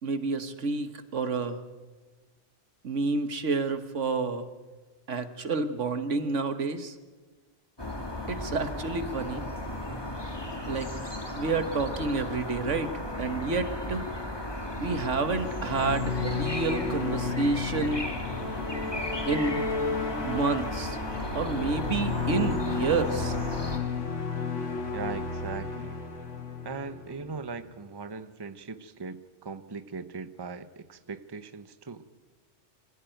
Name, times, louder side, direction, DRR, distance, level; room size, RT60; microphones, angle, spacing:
voice 1, 0.0-1.6 2.8-4.4 5.1-6.9 8.3-9.4 10.6-10.9 11.3-12.9 13.2-14.1 14.8-18.1 19.3-19.6 20.2-21.0 21.3-23.4, right 3 dB, 75° right, 10 dB, 1.7 m, -29 dB
sound 1, 7.8-23.8, left 1 dB, 20° left, 2.2 m, -35 dB
sound 2, 15.0-27.5, left 4 dB, 75° left, 2.5 m, -33 dB
voice 2, 24.9-25.9 26.6-32.0, right 4 dB, 20° right, 11 dB, 0.9 m, -39 dB
26.0 x 16.0 x 9.2 m, 1.3 s
omnidirectional pair, 1.2 m